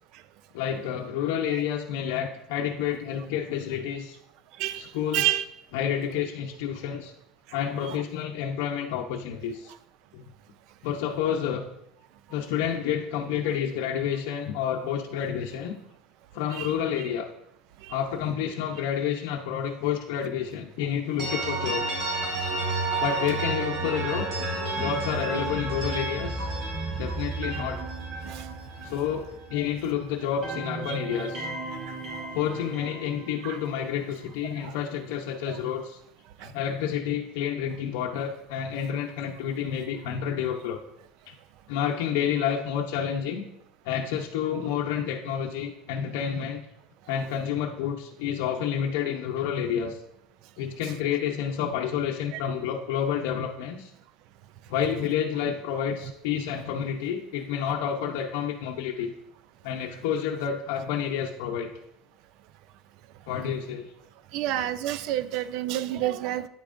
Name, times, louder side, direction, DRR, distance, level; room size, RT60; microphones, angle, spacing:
voice 1, 0.5-4.2 4.7-5.3 5.7-7.1 7.5-9.7 10.1-10.3 10.8-11.6 12.3-15.8 16.3-17.3 17.9-21.9 23.0-24.3 24.7-26.5 27.0-27.8 28.8-31.5 32.3-36.0 36.4-40.8 41.3-41.4 41.7-43.4 43.8-46.6 47.1-50.0 50.6-53.9 54.7-59.1 59.6-61.7 63.3-63.9, left 8 dB, 75° left, 0 dB, 0.7 m, -29 dB
voice 2, 5.1-5.4 16.6-16.7 27.5-27.6 28.3-28.5 34.6-34.7 35.5-35.6 64.3-66.5, right 13 dB, 55° right, 15 dB, 0.4 m, -28 dB
sound 1, 21.2-29.9 30.2-34.3, right 2 dB, 40° right, 3.1 m, -32 dB
9.5 x 8.4 x 2.6 m, 0.82 s
cardioid pair, 155°, 0 cm